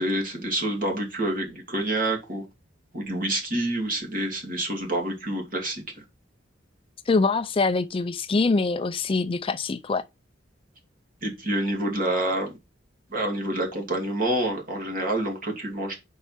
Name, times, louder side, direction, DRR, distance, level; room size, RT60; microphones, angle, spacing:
voice 1, 0.0-2.4 2.9-5.8 11.2-12.5 13.1-15.9, right 1 dB, 45° right, 2.6 m, -27 dB
voice 2, 7.1-10.0, left 3 dB, 30° left, 0.4 m, -24 dB
5.4 x 4.6 x 5.8 m
head